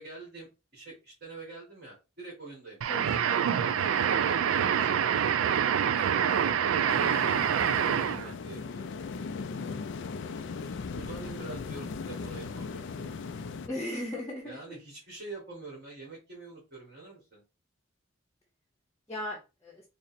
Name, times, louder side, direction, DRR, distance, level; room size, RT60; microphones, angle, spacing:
voice 1, 0.0-2.8 3.6-5.4 5.9-9.1 10.9-13.2 14.4-17.4, right 3 dB, 50° right, -5 dB, 1.7 m, -45 dB
sound 1, 2.8-8.3, right 8 dB, 75° right, 0.3 m, -26 dB
voice 2, 2.9-3.3 13.7-14.8 19.1-19.8, left 1 dB, 15° left, -3 dB, 0.8 m, -37 dB
sound 2, 6.9-13.7, left 4 dB, 60° left, 0.4 m, -38 dB
3.9 x 2.1 x 4.1 m, 0.29 s
head